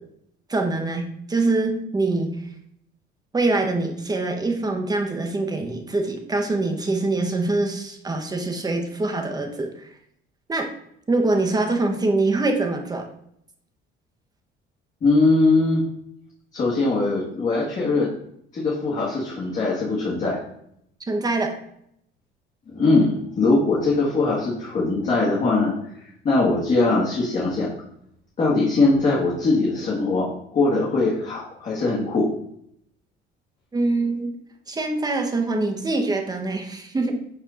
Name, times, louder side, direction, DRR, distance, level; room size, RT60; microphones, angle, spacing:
voice 1, 0.5-2.4 3.3-9.9 10.5-10.7 11.1-13.1 21.1-21.5 33.7-34.3 34.7-37.1, right 2 dB, 20° right, 4 dB, 0.9 m, -24 dB
voice 2, 15.0-15.8 16.5-18.1 18.5-20.4 22.7-25.7 26.2-27.7 28.4-32.3, left 3 dB, 40° left, -5 dB, 1.6 m, -21 dB
11.5 x 4.4 x 2.5 m, 0.73 s
cardioid pair, 120°, 20 cm